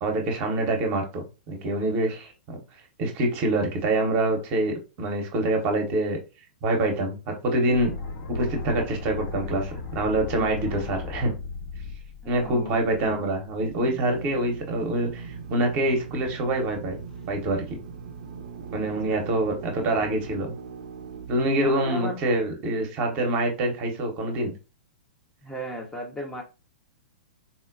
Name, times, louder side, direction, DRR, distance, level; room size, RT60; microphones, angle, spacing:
voice 1, 0.0-2.6 3.0-6.2 6.6-7.9 8.3-11.3 12.3-17.0 17.3-17.8 18.7-20.6 21.3-24.5, right 1 dB, 35° right, 3 dB, 0.9 m, -26 dB
sound 1, 7.7-13.7, left 4 dB, 65° left, 1.2 m, -36 dB
voice 2, 12.2-13.2 18.8-19.4 21.6-22.2 25.4-26.4, left 1 dB, 10° left, 1 dB, 0.7 m, -36 dB
Drill, 13.5-22.2, right 5 dB, 55° right, 0.6 m, -40 dB
4.1 x 2.1 x 2.5 m, 0.30 s
figure-of-eight pair, 110°, 5 cm